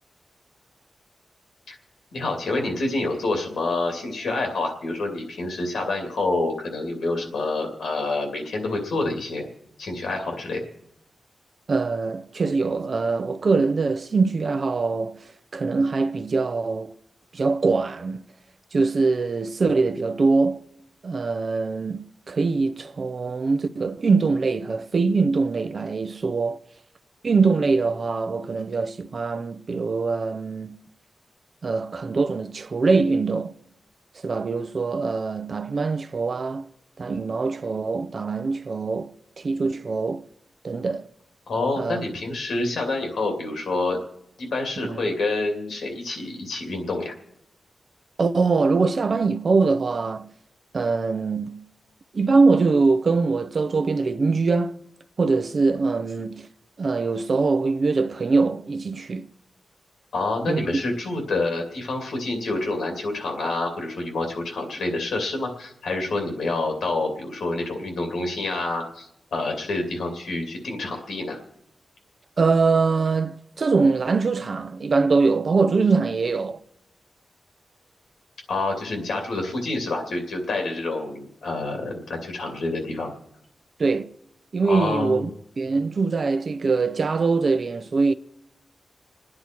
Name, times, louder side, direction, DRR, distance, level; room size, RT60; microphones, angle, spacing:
voice 1, 2.1-9.5 9.8-10.6 41.5-44.0 44.4-47.1 60.1-71.4 78.5-83.1 84.6-85.3, left 2 dB, 90° left, 2.5 m, -27 dB
voice 2, 11.7-16.9 17.3-18.2 18.7-20.6 21.0-26.6 27.2-30.8 31.6-33.5 34.2-36.7 37.0-40.3 40.6-41.1 41.8-42.0 44.8-45.1 48.2-50.3 50.7-51.6 52.1-54.7 55.2-56.5 56.8-59.3 60.5-60.8 72.4-76.6 83.8-84.1 84.5-85.3 85.6-88.1, right 4 dB, 45° right, 0.5 m, -23 dB
28.0 x 9.7 x 4.5 m
wide cardioid pair, 140°, 0 cm